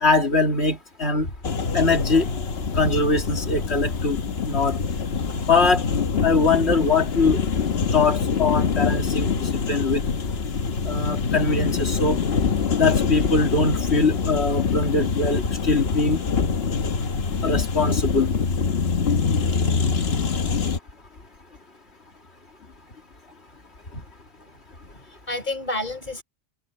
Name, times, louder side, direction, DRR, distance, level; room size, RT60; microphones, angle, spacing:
voice 1, 0.0-1.3 1.7-2.3 2.7-4.2 4.5-4.8 5.5-5.8 6.2-7.4 7.9-10.0 10.8-12.2 12.7-16.2 17.4-18.3, left 3 dB, 85° left, 2.8 m, -22 dB
sound 1, 1.4-20.8, left 5 dB, 70° left, 1.4 m, -24 dB
voice 2, 24.9-26.2, left 2 dB, 45° left, 4.3 m, -31 dB
omnidirectional pair, 1.1 m